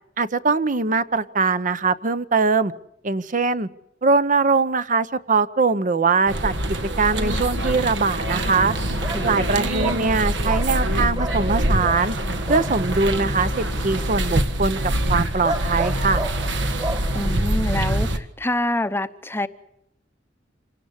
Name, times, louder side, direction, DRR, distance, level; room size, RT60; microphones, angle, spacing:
voice 1, 0.2-2.7 3.0-3.7 4.0-6.5 7.0-8.7 9.2-12.2 12.5-14.8 15.1-16.2, right 4 dB, 45° right, 0.9 m, -21 dB
sound 1, 6.3-18.2, right 1 dB, 70° right, 1.8 m, -24 dB
sound 2, 8.3-17.3, right 2 dB, 20° right, 1.9 m, -34 dB
voice 2, 9.1-9.7 17.1-19.5, left 1 dB, 15° left, 0.8 m, -27 dB
27.0 x 17.5 x 8.2 m
head